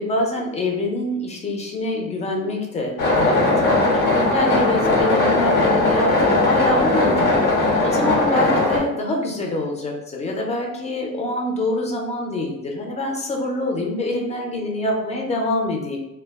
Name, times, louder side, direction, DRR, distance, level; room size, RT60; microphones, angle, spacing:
voice 1, 0.0-16.0, left 1 dB, 20° left, 0 dB, 0.4 m, -25 dB
sound 1, 3.0-8.8, left 2 dB, 70° left, 0.8 m, -18 dB
2.2 x 2.1 x 3.3 m, 0.93 s
cardioid pair, 160°, 33 cm